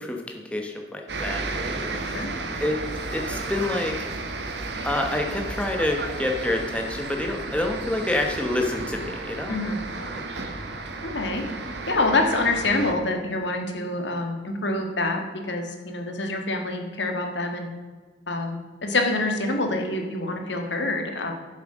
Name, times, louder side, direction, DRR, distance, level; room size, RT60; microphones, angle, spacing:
voice 1, 0.0-1.8 2.6-2.8 3.1-4.0 4.8-9.6, left 1 dB, 5° left, 2 dB, 1.1 m, -27 dB
sound 1, 1.1-12.9, right 3 dB, 65° right, 1.4 m, -33 dB
voice 2, 11.0-17.7 18.3-21.3, left 2 dB, 70° left, 4 dB, 1.8 m, -26 dB
11.5 x 7.4 x 6.2 m, 1.5 s
head